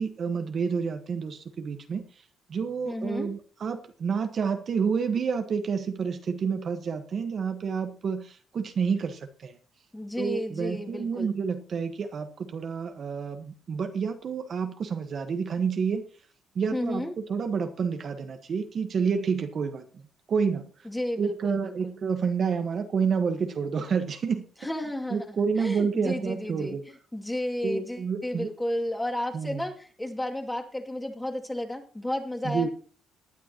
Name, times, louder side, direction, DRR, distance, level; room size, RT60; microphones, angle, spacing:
voice 1, 0.0-2.0 2.5-9.6 10.2-16.0 16.5-20.0 20.3-20.7 21.2-24.4 25.1-26.8 27.6-28.5 29.3-29.6 32.4-32.7, right 6 dB, 55° right, 7 dB, 1.3 m, -29 dB
voice 2, 2.9-3.3 9.9-11.3 16.7-17.1 20.8-22.0 24.6-25.2 25.6-26.8 27.1-32.7, left 1 dB, 10° left, 1 dB, 2.6 m, -32 dB
19.0 x 10.0 x 3.0 m, 0.40 s
cardioid pair, 90°, 0 cm